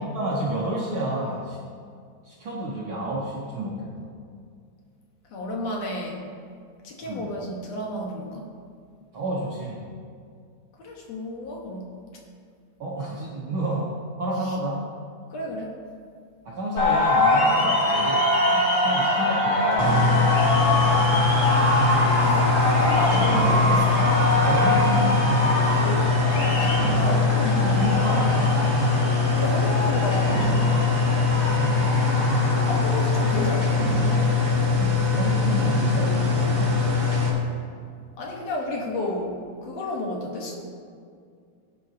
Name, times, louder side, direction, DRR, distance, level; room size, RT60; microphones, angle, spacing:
voice 1, 0.0-1.6 2.2-4.1 7.0-7.3 9.1-9.8 12.8-14.9 16.4-18.3 18.8-20.0 24.4-25.2 27.0-27.3 27.6-28.6 31.5-32.1 34.7-36.8, right 1 dB, 75° right, -5 dB, 1.1 m, -30 dB
voice 2, 5.3-6.2 6.8-8.5 10.8-11.9 14.4-14.6 15.3-15.8 18.4-18.8 22.2-24.3 25.8-26.1 26.5-27.8 29.3-30.8 32.7-33.9 38.2-40.6, left 1 dB, 60° left, -1 dB, 2.2 m, -32 dB
sound 1, 16.8-34.5, left 1 dB, 80° left, 4.3 m, -24 dB
sound 2, 19.8-37.3, left 4 dB, 30° right, 0.8 m, -22 dB
16.5 x 9.2 x 2.8 m, 2.2 s
omnidirectional pair, 3.9 m